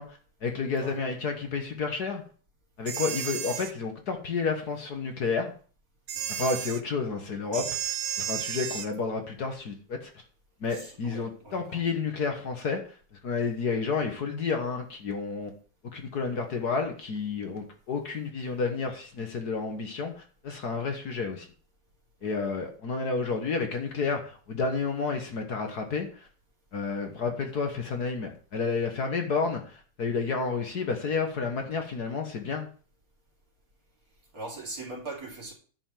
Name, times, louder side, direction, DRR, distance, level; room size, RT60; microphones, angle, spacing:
voice 1, 0.0-2.2 2.8-5.5 6.3-10.1 10.6-12.8 13.2-15.5 15.9-21.5 22.2-26.3 26.7-32.7, left 4 dB, 55° left, 4 dB, 1.8 m, -31 dB
sound 1, 2.9-3.7 6.1-6.8 7.5-8.9, right 9 dB, 65° right, 1.5 m, -33 dB
voice 2, 10.7-11.9 22.2-22.4 34.3-35.5, right 2 dB, 45° right, -1 dB, 3.3 m, -41 dB
10.0 x 5.4 x 7.5 m, 0.41 s
omnidirectional pair, 2.2 m